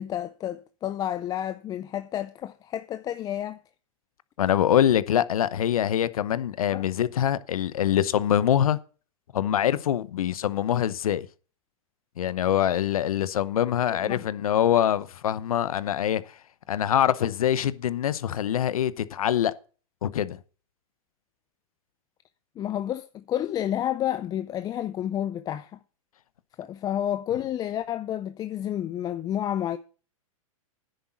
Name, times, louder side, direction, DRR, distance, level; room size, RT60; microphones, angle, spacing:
voice 1, 0.0-3.6 6.7-6.9 14.0-14.2 22.6-25.8 26.6-29.8, left 11 dB, 20° left, 0.5 m, -30 dB
voice 2, 4.4-8.8 9.3-11.3 12.2-16.3 16.7-19.5 20.0-20.4, left 10 dB, 80° left, 0.9 m, -24 dB
10.5 x 8.1 x 6.0 m
hypercardioid pair, 125°, 18 cm